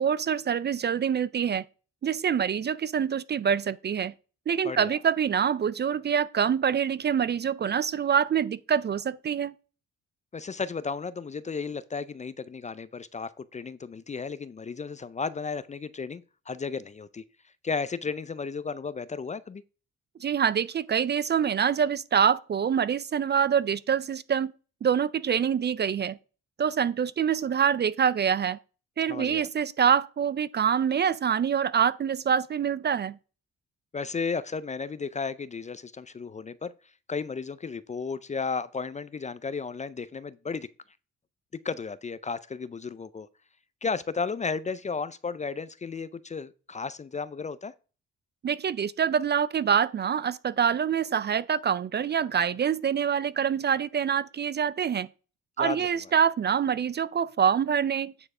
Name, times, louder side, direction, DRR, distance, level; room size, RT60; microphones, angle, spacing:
voice 1, 0.0-1.6 2.0-4.1 4.5-9.5 20.2-24.5 24.8-26.2 26.6-28.6 29.0-33.2 48.4-55.1 55.6-58.1, right 7 dB, 35° right, 0.4 m, -25 dB
voice 2, 4.6-5.0 10.3-17.2 17.6-19.6 29.1-29.5 33.9-36.7 37.1-40.7 41.6-43.3 43.8-47.7 55.6-55.9, left 5 dB, 25° left, 0.4 m, -34 dB
8.8 x 4.7 x 4.8 m
cardioid pair, 90°, 30 cm